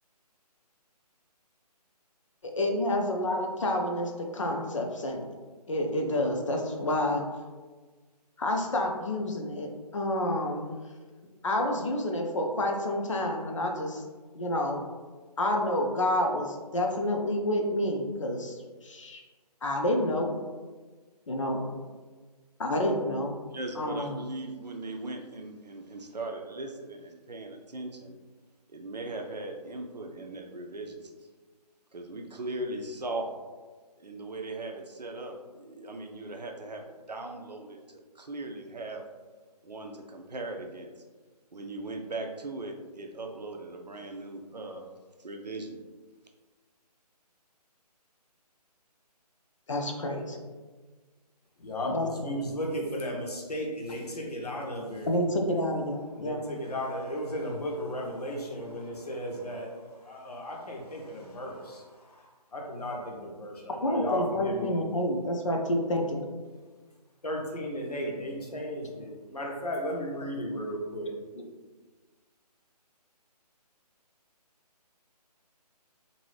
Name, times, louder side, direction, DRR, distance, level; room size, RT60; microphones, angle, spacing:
voice 1, 2.4-5.2 5.7-7.2 8.4-10.7 11.4-14.0 14.3-14.8 15.4-19.2 19.6-20.3 21.3-21.6 22.6-23.3 23.8-24.2 49.7-50.5 51.8-52.4 55.1-56.4 63.8-66.3 71.4-71.5, left 1 dB, 50° left, 2 dB, 0.5 m, -29 dB
voice 2, 23.5-28.2 28.7-31.1 31.9-33.3 34.0-39.1 39.6-40.9 41.5-44.9 45.2-45.8, right 2 dB, 80° right, 3 dB, 0.5 m, -39 dB
voice 3, 51.6-55.1 56.2-62.2 62.5-64.8 67.2-71.1, equal, 65° left, -1 dB, 0.8 m, -35 dB
2.6 x 2.6 x 3.1 m, 1.4 s
figure-of-eight pair, 145°, 21 cm